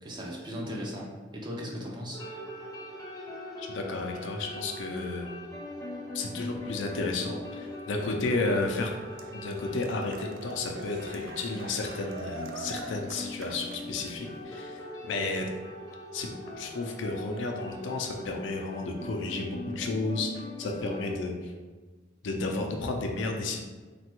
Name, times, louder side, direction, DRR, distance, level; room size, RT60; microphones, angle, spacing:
voice 1, 0.0-2.2, equal, 25° right, -2 dB, 0.5 m, -37 dB
sound 1, 2.1-21.1, left 1 dB, 20° left, 0.6 m, -41 dB
voice 2, 3.6-5.3 6.1-8.9 9.3-15.4 16.1-16.3 16.6-20.3 20.6-21.5 22.2-23.6, left 3 dB, 75° left, 2 dB, 0.4 m, -32 dB
Cheering, 7.4-14.4, right 3 dB, 85° right, 0.3 m, -45 dB
3.2 x 2.2 x 2.9 m, 1.4 s
head